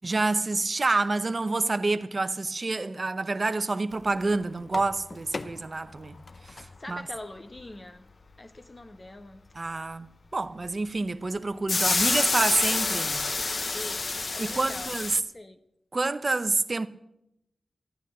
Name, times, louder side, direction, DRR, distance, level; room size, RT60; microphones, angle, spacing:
voice 1, 0.0-6.2 6.4-7.0 9.6-13.2 14.4-15.1 15.9-16.9, right 3 dB, 45° right, 0.7 m, -28 dB
sound 1, 4.0-4.1 4.4-4.5 4.7-5.6 6.1-6.7 7.6-7.7 11.7-15.2, left 3 dB, 55° left, 0.6 m, -28 dB
voice 2, 6.8-8.1 8.4-9.4 13.7-15.6, left 2 dB, 35° left, 1.2 m, -43 dB
13.5 x 9.8 x 6.7 m
cardioid pair, 45°, 0 cm